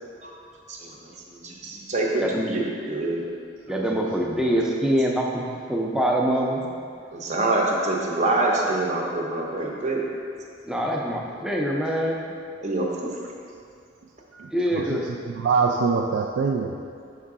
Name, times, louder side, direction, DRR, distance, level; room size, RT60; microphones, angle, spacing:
voice 1, 0.7-3.2 7.1-10.1 12.6-13.1, right 2 dB, 40° right, -1 dB, 0.7 m, -26 dB
voice 2, 3.7-6.7 10.7-12.4 14.5-15.1, equal, 5° right, -1 dB, 0.5 m, -24 dB
voice 3, 14.3-16.8, right 5 dB, 85° right, 1 dB, 0.3 m, -25 dB
5.5 x 4.8 x 3.6 m, 2.3 s
head